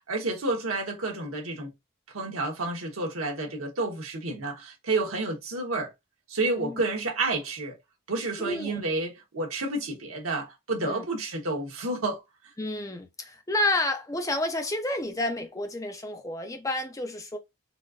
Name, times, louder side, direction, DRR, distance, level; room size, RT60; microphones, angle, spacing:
voice 1, 0.1-1.7 2.1-5.9 6.3-7.8 8.1-12.2, right 2 dB, 80° right, 1.0 m, -30 dB
voice 2, 8.4-8.8 10.8-11.0 12.6-17.4, left 1 dB, 15° left, 0.5 m, -30 dB
4.0 x 2.4 x 2.3 m
head